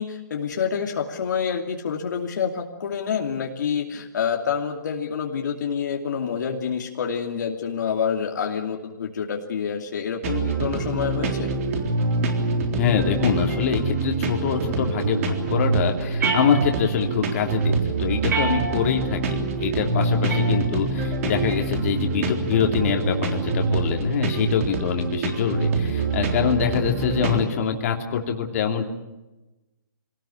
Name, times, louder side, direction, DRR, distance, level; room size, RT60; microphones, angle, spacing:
voice 1, 0.0-11.5, left 7 dB, 65° left, 2 dB, 2.7 m, -27 dB
sound 1, 10.2-27.4, right 3 dB, 45° right, 3.7 m, -25 dB
voice 2, 12.8-28.9, left 7 dB, 45° left, 3 dB, 3.0 m, -24 dB
sound 2, 16.2-17.1 18.3-19.1 20.3-21.1, right 4 dB, 60° right, 7.2 m, -29 dB
25.0 x 18.5 x 8.7 m, 1.0 s
hypercardioid pair, 150°, 11 cm